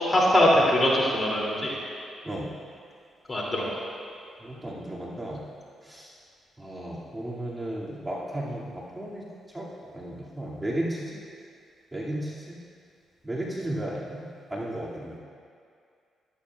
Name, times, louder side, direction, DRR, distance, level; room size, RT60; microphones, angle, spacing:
voice 1, 0.0-1.7 3.3-3.6, left 1 dB, 30° left, -4 dB, 2.8 m, -22 dB
voice 2, 4.4-5.4 5.9-6.1 6.6-9.3 9.5-9.7 9.9-11.2 11.9-12.6 13.2-15.2, right 1 dB, 15° right, -7 dB, 2.4 m, -34 dB
13.0 x 12.0 x 2.4 m, 2.3 s
supercardioid pair, 55°, 0 cm